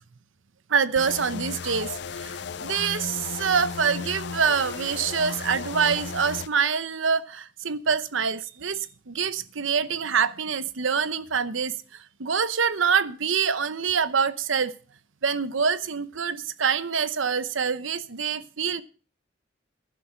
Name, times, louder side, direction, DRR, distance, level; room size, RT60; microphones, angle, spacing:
voice 1, 0.7-14.7 15.2-18.8, right 6 dB, 85° right, 0.9 m, -26 dB
sound 1, 1.0-6.5, left 5 dB, 60° left, 0.5 m, -35 dB
11.5 x 11.0 x 5.7 m
head